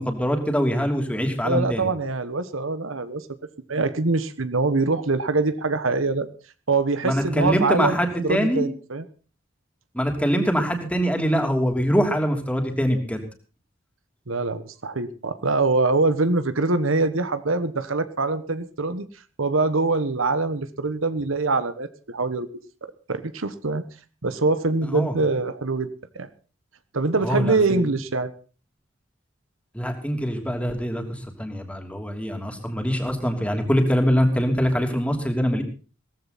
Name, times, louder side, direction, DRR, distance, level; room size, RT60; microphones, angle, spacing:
voice 1, 0.0-1.9 7.0-8.7 9.9-13.2 24.8-25.1 27.2-27.9 29.7-35.6, equal, 5° left, 4 dB, 3.1 m, -23 dB
voice 2, 1.4-3.2 3.7-6.3 6.7-9.0 14.3-19.1 19.4-22.5 22.8-23.8 24.2-25.9 26.1-26.3 26.9-28.3, right 3 dB, 85° right, 13 dB, 1.3 m, -24 dB
17.5 x 15.0 x 4.2 m, 0.36 s
head